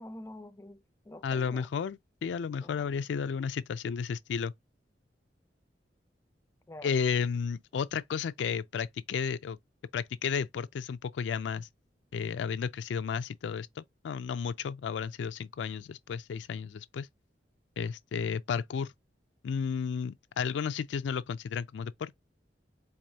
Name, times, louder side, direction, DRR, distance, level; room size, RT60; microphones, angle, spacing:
voice 1, 0.0-1.7 2.6-2.9 6.7-7.0, left 1 dB, 15° left, 0.4 m, -47 dB
voice 2, 1.2-4.5 6.8-9.6 9.9-11.7 12.1-17.1 17.8-18.9 19.4-22.2, left 6 dB, 80° left, 0.3 m, -33 dB
4.7 x 2.5 x 2.7 m
head